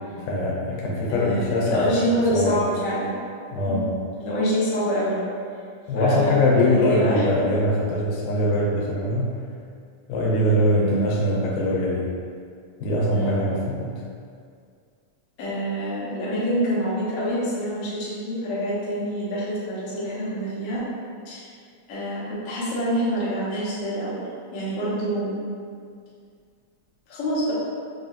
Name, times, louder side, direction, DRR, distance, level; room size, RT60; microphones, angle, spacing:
voice 1, 0.2-2.6 3.5-4.0 5.9-9.4 10.1-12.1 12.8-13.9, left 1 dB, 85° left, -4 dB, 2.3 m, -22 dB
voice 2, 1.1-3.3 3.6-3.8 4.2-5.2 5.9-7.2 10.7-11.0 13.1-13.4 15.4-20.9 21.2-21.5 21.9-24.3 24.5-25.5 27.1-27.5, equal, 65° left, -9 dB, 1.7 m, -26 dB
5.4 x 2.5 x 2.4 m, 2.2 s
omnidirectional pair, 3.6 m